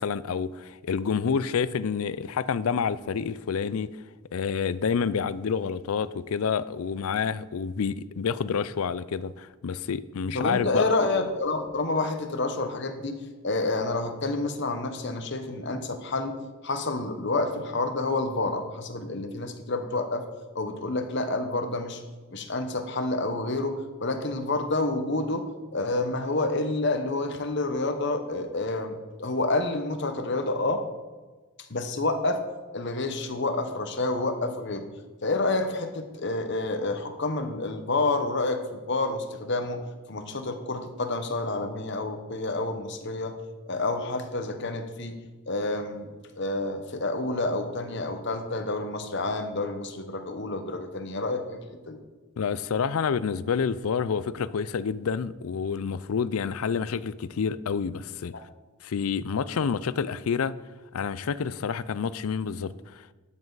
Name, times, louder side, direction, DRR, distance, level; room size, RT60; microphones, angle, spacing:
voice 1, 0.0-3.9 4.3-10.9 52.4-58.3 58.8-60.5 60.9-63.1, left 6 dB, 75° left, 17 dB, 0.4 m, -28 dB
voice 2, 10.3-13.2 13.4-16.4 16.6-20.3 20.5-22.0 22.3-25.5 25.7-30.8 31.7-32.4 32.7-34.9 35.2-39.8 40.1-43.4 43.7-45.2 45.5-46.1 46.4-51.6 51.9-52.0, left 2 dB, 50° left, 7 dB, 1.0 m, -28 dB
12.5 x 7.4 x 4.0 m, 1.3 s
head